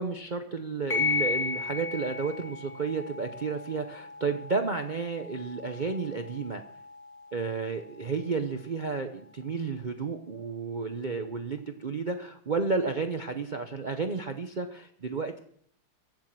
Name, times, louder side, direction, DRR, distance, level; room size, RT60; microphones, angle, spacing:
voice 1, 0.0-6.6 7.3-15.4, right 4 dB, 55° right, 6 dB, 0.5 m, -32 dB
sound 1, 0.9-9.9, left 5 dB, 15° left, 2.4 m, -36 dB
15.5 x 7.2 x 7.4 m, 0.66 s
omnidirectional pair, 2.0 m